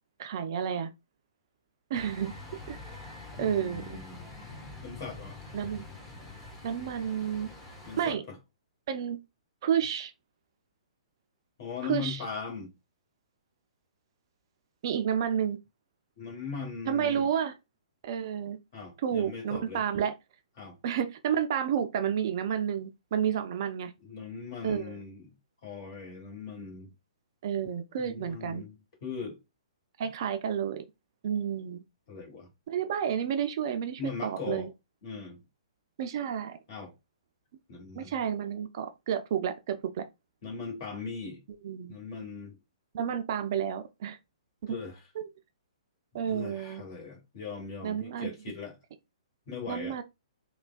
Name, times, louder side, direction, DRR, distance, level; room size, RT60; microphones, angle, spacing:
voice 1, 0.2-0.9 1.9-2.3 2.7-2.8 3.4-4.0 5.5-5.8 6.6-7.5 8.0-8.2 8.9-9.2 9.6-10.1 11.8-12.2 14.8-15.6 16.9-17.5 18.0-18.6 19.0-20.1 20.8-23.9 24.6-24.9 27.4-28.6 30.0-30.8 31.2-31.8 32.7-34.7 36.0-36.6 37.9-40.0 41.6-42.0 42.9-44.2 44.6-44.8 45.2-45.3 46.1-46.8 47.8-48.3 49.7-50.0, right 8 dB, 40° right, 0.3 m, -30 dB
sound 1, 1.9-8.1, left 3 dB, 20° left, 1.2 m, -45 dB
voice 2, 3.4-4.3 4.8-5.4 7.9-8.4 11.6-12.7 16.2-17.3 18.7-19.8 20.6-20.8 24.0-25.3 25.6-26.9 28.0-28.7 29.0-29.4 32.1-32.5 34.0-34.7 35.0-35.4 36.7-36.9 37.7-38.3 40.4-41.4 41.9-42.6 44.7-45.0 46.1-48.7 49.5-50.0, left 5 dB, 40° left, 1.2 m, -39 dB
3.3 x 2.1 x 2.3 m
figure-of-eight pair, 120°, 3 cm